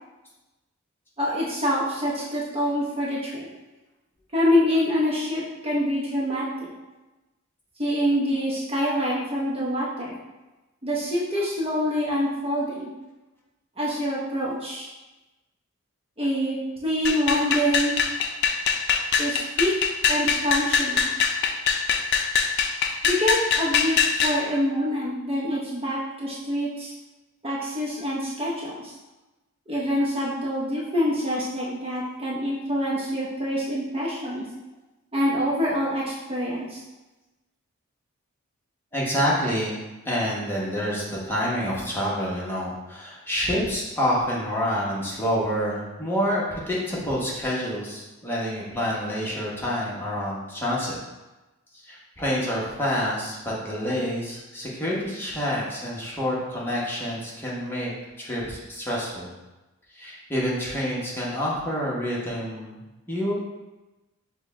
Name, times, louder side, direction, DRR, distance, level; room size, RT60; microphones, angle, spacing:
voice 1, 1.2-3.5 4.3-6.7 7.8-10.2 10.8-12.9 13.8-14.9 16.2-16.6 16.8-17.9 19.2-19.7 20.1-21.1 23.0-26.9 27.4-28.9 29.7-34.4 35.1-36.8, equal, 30° right, -5 dB, 0.7 m, -26 dB
sound 1, 17.0-24.4, left 6 dB, 55° left, 0.4 m, -23 dB
voice 2, 38.9-39.8 40.0-51.0 51.8-57.9 58.2-59.3 59.9-62.8 63.1-63.3, equal, 10° left, -6 dB, 1.0 m, -27 dB
6.3 x 2.2 x 3.6 m, 1.1 s
head